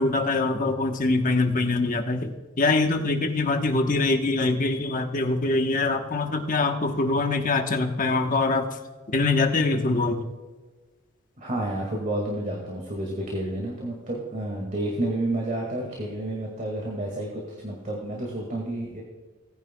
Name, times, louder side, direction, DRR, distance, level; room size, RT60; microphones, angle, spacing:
voice 1, 0.0-8.7 9.1-10.2, left 3 dB, 40° left, 4 dB, 1.1 m, -24 dB
voice 2, 11.4-19.0, right 1 dB, 40° right, -1 dB, 2.0 m, -30 dB
18.0 x 10.0 x 2.3 m, 1.3 s
head